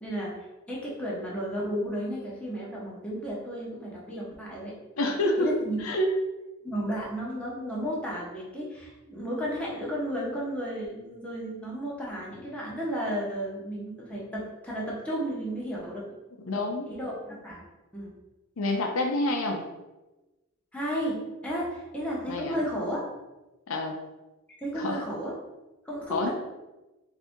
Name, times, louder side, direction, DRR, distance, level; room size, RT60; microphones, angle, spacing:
voice 1, 0.0-4.8 5.4-5.8 6.6-16.1 16.9-17.6 17.9-18.1 20.7-23.2 24.6-25.3 25.8-26.3, equal, 5° left, -5 dB, 0.9 m, -33 dB
voice 2, 5.0-5.5 5.8-6.1 16.4-16.9 18.6-19.6 22.3-22.6 23.7-23.9 24.7-25.0 26.1-26.3, left 1 dB, 70° left, 2 dB, 0.5 m, -28 dB
4.0 x 2.7 x 3.6 m, 1.1 s
head